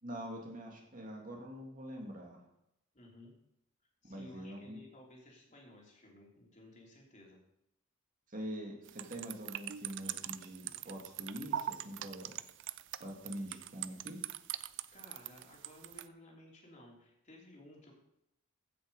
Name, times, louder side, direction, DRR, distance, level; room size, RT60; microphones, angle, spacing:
voice 1, 0.0-2.4 4.0-4.8 8.3-12.3 13.0-14.2, equal, 40° right, 0 dB, 2.2 m, -44 dB
voice 2, 2.9-3.3 4.0-7.4 14.9-17.9, left 1 dB, 35° left, -2 dB, 3.3 m, -56 dB
sound 1, 8.9-16.1, right 11 dB, 60° right, 0.4 m, -42 dB
15.5 x 6.7 x 5.4 m, 0.81 s
head